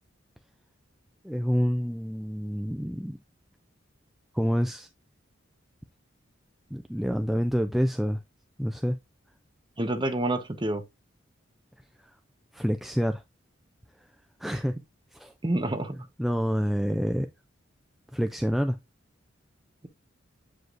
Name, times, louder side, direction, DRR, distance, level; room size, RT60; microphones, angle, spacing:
voice 1, 1.2-3.2 4.3-4.9 6.7-8.2 8.6-9.0 12.0-12.1 12.5-13.2 14.4-14.8 15.1-15.3 16.2-17.3 18.1-18.8, equal, ahead, 0.3 m, -27 dB
voice 2, 9.8-10.8 15.4-16.1, right 1 dB, 25° right, 0.9 m, -28 dB
7.7 x 5.0 x 2.5 m
head